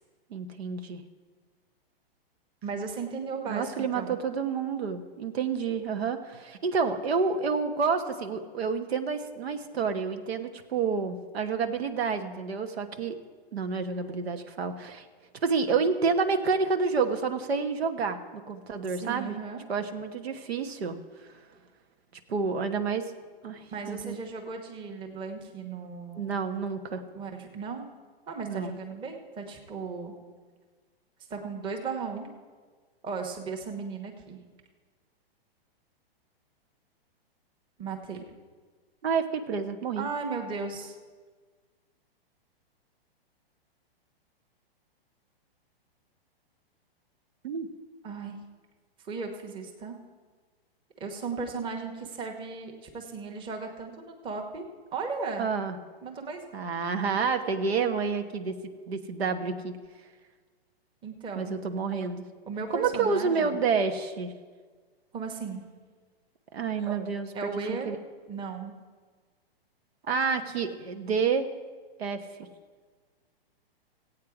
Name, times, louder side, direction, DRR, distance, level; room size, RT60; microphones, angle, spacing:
voice 1, 0.3-1.0 3.5-13.2 13.5-15.0 15.4-19.4 19.7-21.0 22.3-23.1 23.4-24.2 26.2-27.0 28.5-28.8 39.0-40.1 47.4-47.7 55.4-55.8 56.5-58.5 58.9-59.8 61.3-62.2 62.7-64.3 66.5-67.3 67.7-68.0 70.1-71.5 72.0-72.2, right 5 dB, 90° right, 7 dB, 1.2 m, -29 dB
voice 2, 2.6-4.2 18.9-19.6 23.7-26.3 27.1-27.8 28.3-30.1 31.3-32.3 33.0-34.4 37.8-38.3 39.9-41.0 48.0-48.4 49.0-50.0 51.0-54.6 54.9-55.5 56.0-56.5 61.0-61.5 62.5-63.6 65.1-65.6 67.3-67.9 68.3-68.7, right 4 dB, 15° right, 3 dB, 1.0 m, -36 dB
16.0 x 8.5 x 4.8 m, 1.5 s
hypercardioid pair, 150°, 30 cm